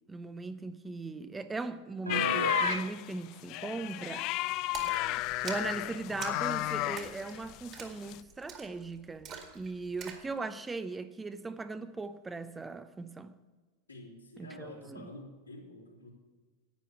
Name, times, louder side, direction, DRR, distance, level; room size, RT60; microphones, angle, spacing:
voice 1, 0.1-4.7 5.4-13.3 14.4-15.1, right 3 dB, 10° right, 0.6 m, -39 dB
sound 1, 2.1-7.7 8.0-8.2, left 17 dB, 40° left, 0.3 m, -33 dB
Piano, 2.1-2.9, right 1 dB, 85° right, 0.6 m, -32 dB
Splash splatter, 4.7-10.3, right 6 dB, 30° right, 2.1 m, -46 dB
voice 2, 13.9-16.1, left 2 dB, 80° left, 3.3 m, -48 dB
11.5 x 9.2 x 6.9 m
figure-of-eight pair, 90°, 0 cm